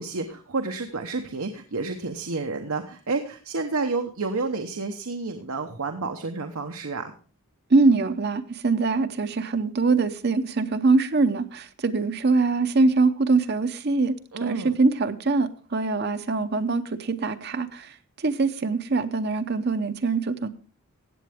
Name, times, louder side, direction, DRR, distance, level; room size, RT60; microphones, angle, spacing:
voice 1, 0.0-7.1 14.3-14.8, right 3 dB, 85° right, 5 dB, 0.9 m, -30 dB
voice 2, 7.7-20.5, right 3 dB, 50° right, 9 dB, 0.7 m, -23 dB
15.5 x 8.6 x 3.5 m, 0.39 s
head